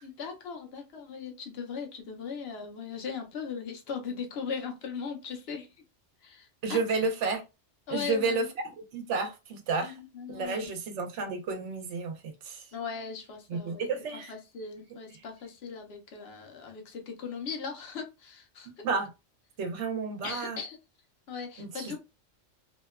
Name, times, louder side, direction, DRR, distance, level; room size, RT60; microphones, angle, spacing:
voice 1, 0.0-5.7 6.2-6.8 7.9-8.5 9.8-10.8 12.7-13.9 14.3-18.7 20.2-20.8 21.3-22.0, left 6 dB, 65° left, 0.8 m, -38 dB
voice 2, 6.6-7.4 7.9-10.0 10.3-12.6 13.5-14.3 18.8-19.1 19.6-20.6 21.6-22.0, right 4 dB, 75° right, 0.9 m, -31 dB
2.8 x 2.1 x 2.3 m
omnidirectional pair, 1.2 m